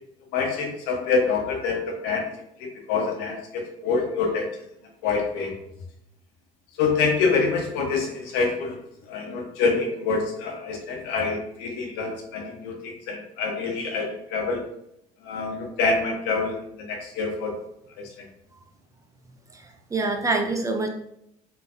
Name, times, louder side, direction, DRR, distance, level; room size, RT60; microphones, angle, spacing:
voice 1, 0.3-2.3 2.6-4.5 5.0-5.5 6.8-8.8 9.1-14.6 15.2-17.6 18.0-18.1, left 4 dB, 60° left, 2 dB, 0.8 m, -26 dB
voice 2, 19.5-20.9, right 3 dB, 15° right, 2 dB, 0.5 m, -26 dB
4.5 x 2.5 x 2.3 m, 0.76 s
figure-of-eight pair, 55°, 19 cm